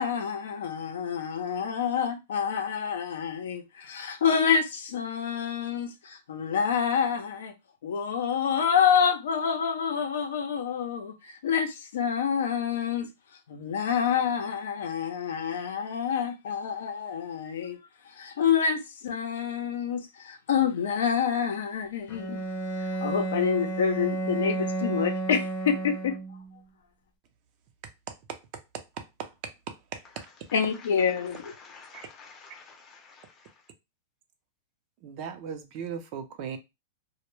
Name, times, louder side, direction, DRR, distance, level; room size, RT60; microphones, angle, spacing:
voice 1, 0.0-7.5 7.8-13.1 13.5-17.8 18.1-22.4 22.8-26.2 30.5-31.5, left 7 dB, 80° left, 0.5 m, -27 dB
Bowed string instrument, 22.1-26.5, right 2 dB, 55° left, 0.9 m, -32 dB
voice 2, 28.1-28.4 28.7-30.3 31.9-32.0 35.0-36.6, right 7 dB, 45° right, 0.6 m, -38 dB
voice 3, 30.5-33.7, left 5 dB, 25° left, 0.6 m, -50 dB
2.1 x 2.1 x 3.1 m
hypercardioid pair, 140°, 0 cm